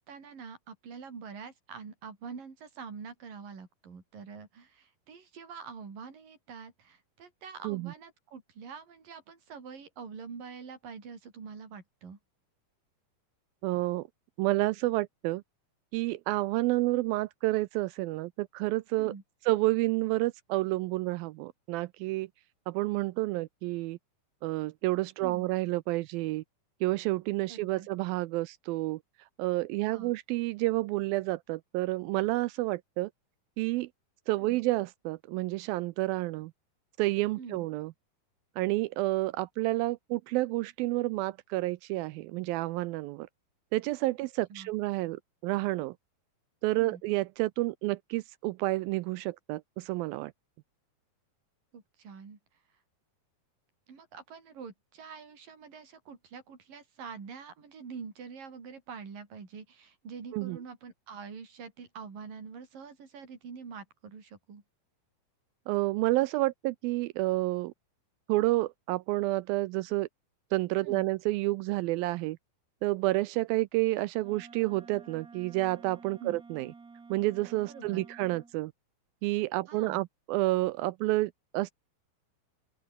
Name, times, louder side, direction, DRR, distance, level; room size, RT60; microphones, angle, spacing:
voice 1, 0.0-12.2 19.0-19.2 25.2-25.5 27.5-27.9 29.9-30.1 34.4-34.6 37.4-37.7 44.5-44.7 46.8-47.0 51.7-52.4 53.9-64.6 70.8-71.1 76.2-76.4 77.6-78.1 79.7-80.0, right 6 dB, 60° right, 6.6 m, -45 dB
voice 2, 13.6-14.1 14.4-15.4 15.9-19.1 19.5-22.3 22.7-24.0 24.4-26.4 26.8-29.0 29.4-33.1 33.6-33.9 34.3-36.5 37.0-37.9 38.6-43.3 43.7-46.0 46.6-50.3 60.3-60.6 65.7-67.7 68.3-70.1 70.5-72.4 72.8-76.7 77.1-78.7 79.2-81.7, right 19 dB, 80° right, 2.3 m, -30 dB
Wind instrument woodwind instrument, 74.2-78.5, right 4 dB, 45° right, 6.1 m, -51 dB
open air
omnidirectional pair, 4.4 m